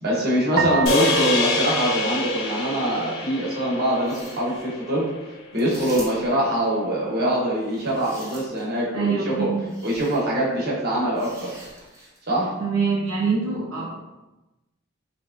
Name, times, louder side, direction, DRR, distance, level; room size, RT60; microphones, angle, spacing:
voice 1, 0.0-5.0 5.5-9.5 9.8-11.5 12.3-12.5, right 1 dB, 50° right, -5 dB, 1.1 m, -23 dB
sound 1, 0.6-3.0, right 4 dB, 65° right, 0.3 m, -29 dB
sound 2, 0.9-5.3, left 3 dB, 70° left, 0.7 m, -26 dB
sound 3, 3.9-4.7 5.6-6.4 7.6-8.8 9.7-10.2 11.2-12.3, right 1 dB, 15° right, 0.7 m, -44 dB
voice 2, 8.9-9.6 12.6-14.0, right 5 dB, 85° right, -4 dB, 0.7 m, -24 dB
3.4 x 3.4 x 2.5 m, 1.0 s
head